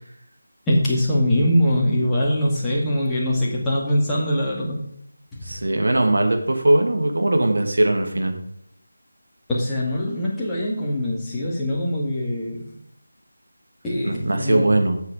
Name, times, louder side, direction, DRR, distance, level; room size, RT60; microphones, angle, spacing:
voice 1, 0.7-4.9 5.3-5.6 9.5-12.7 13.8-14.7, left 1 dB, 5° left, -7 dB, 2.1 m, -22 dB
voice 2, 5.4-8.4 14.0-15.0, right 1 dB, 60° right, 4 dB, 2.1 m, -20 dB
9.4 x 7.1 x 4.9 m, 0.73 s
figure-of-eight pair, 160°, 0 cm